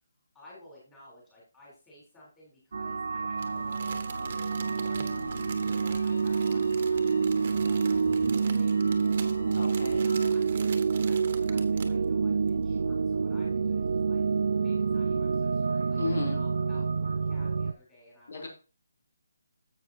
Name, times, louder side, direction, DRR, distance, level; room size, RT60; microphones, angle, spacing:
voice 1, 0.3-5.4 5.8-8.0 8.3-9.5 9.9-14.2 14.6-18.5, left 1 dB, 5° left, -7 dB, 3.5 m, -55 dB
sound 1, 2.7-17.7, right 5 dB, 45° right, 0.3 m, -27 dB
sound 2, 3.4-10.3, left 2 dB, 80° left, 2.1 m, -45 dB
Crumpling crinkling, 3.4-12.0 12.5-12.6, right 5 dB, 25° right, 1.2 m, -45 dB
voice 2, 9.6-10.1 16.0-16.4 18.3-18.5, left 3 dB, 65° left, 1 dB, 2.7 m, -34 dB
11.0 x 8.1 x 2.8 m, 0.33 s
hypercardioid pair, 180°, 0 cm